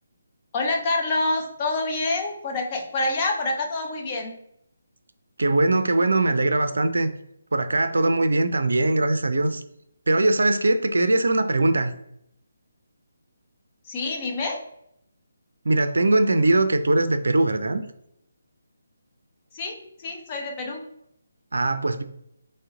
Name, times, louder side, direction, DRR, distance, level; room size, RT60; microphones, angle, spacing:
voice 1, 0.5-4.4 13.9-14.6 19.5-20.8, left 2 dB, 25° left, 1 dB, 0.8 m, -27 dB
voice 2, 5.4-7.1 7.5-9.6 10.1-11.9 15.6-17.8 21.5-22.0, right 2 dB, 60° right, 9 dB, 0.5 m, -21 dB
6.3 x 2.1 x 3.7 m, 0.75 s
figure-of-eight pair, 145°, 0 cm